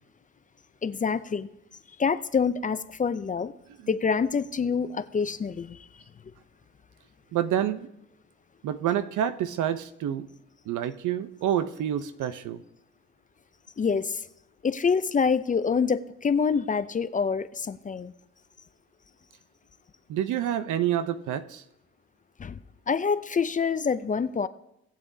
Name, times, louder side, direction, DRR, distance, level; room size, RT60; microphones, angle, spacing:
voice 1, 0.8-1.5 2.0-3.5 3.9-5.8 13.8-14.2 14.6-18.1 22.4-22.6 22.9-24.5, left 5 dB, 25° left, 13 dB, 0.5 m, -26 dB
voice 2, 7.3-7.9 8.6-10.3 10.7-12.6 20.1-21.6, right 10 dB, 80° right, 12 dB, 0.8 m, -28 dB
19.0 x 7.4 x 2.7 m, 0.82 s
cardioid pair, 90°, 30 cm